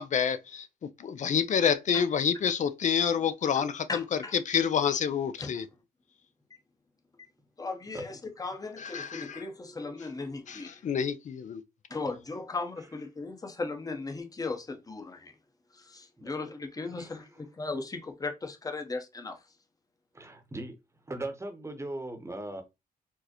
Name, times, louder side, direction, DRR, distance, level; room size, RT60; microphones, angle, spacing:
voice 1, 0.0-5.7 8.8-9.4 10.5-11.6, left 7 dB, 55° left, 0.5 m, -28 dB
voice 2, 3.9-4.3 5.4-5.5 6.5-6.6 7.2-7.3 7.6-10.9 11.9-15.3 15.7-19.4, left 3 dB, 25° left, 0.8 m, -37 dB
voice 3, 7.9-8.6 12.8-12.9 16.2-16.3 16.9-17.4 20.1-20.8 21.1-22.6, right 1 dB, 20° right, 0.9 m, -40 dB
4.5 x 2.1 x 2.9 m
cardioid pair, 80°, 16 cm